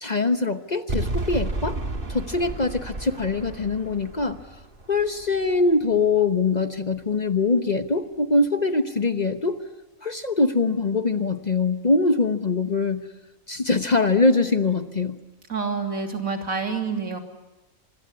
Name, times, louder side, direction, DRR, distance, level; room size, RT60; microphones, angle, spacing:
voice 1, 0.0-1.8 2.1-4.4 4.9-9.6 10.0-13.1 13.5-15.2, left 3 dB, 35° left, 9 dB, 1.0 m, -23 dB
sound 1, 0.9-6.1, right 2 dB, 40° right, 2.2 m, -32 dB
voice 2, 15.5-17.2, right 5 dB, 80° right, 3 dB, 3.5 m, -27 dB
25.5 x 22.5 x 9.7 m, 1.1 s
omnidirectional pair, 1.4 m